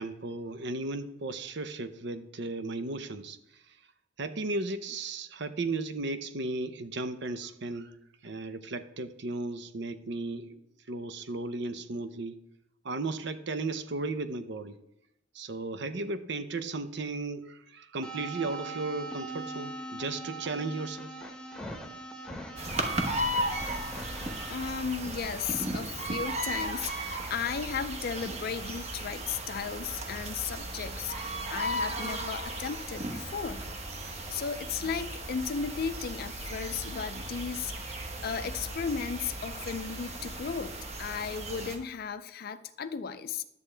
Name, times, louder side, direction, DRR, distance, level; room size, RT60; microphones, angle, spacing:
voice 1, 0.0-3.8 4.2-8.0 8.2-10.6 10.9-12.4 12.8-14.7 15.3-21.1, right 3 dB, 60° right, 10 dB, 0.7 m, -35 dB
sound 1, 18.0-24.5, right 2 dB, 5° left, 1.0 m, -41 dB
sound 2, 22.6-41.8, right 1 dB, 35° right, 1.2 m, -36 dB
voice 2, 24.5-33.6 33.9-43.4, left 6 dB, 50° left, 10 dB, 0.4 m, -35 dB
11.0 x 8.4 x 3.3 m, 0.78 s
head